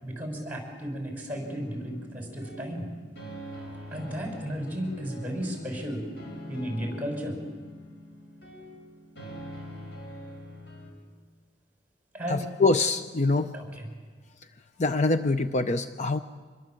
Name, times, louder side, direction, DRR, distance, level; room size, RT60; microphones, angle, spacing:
voice 1, 0.0-2.9 3.9-6.0 6.5-7.4 12.1-12.4 13.5-13.9, equal, 10° right, 1 dB, 6.1 m, -34 dB
sound 1, 1.3-10.9, equal, 65° left, 5.2 m, -44 dB
voice 2, 12.3-13.5 14.8-16.2, left 3 dB, 40° left, 10 dB, 0.6 m, -24 dB
26.0 x 22.0 x 7.7 m, 1.5 s
head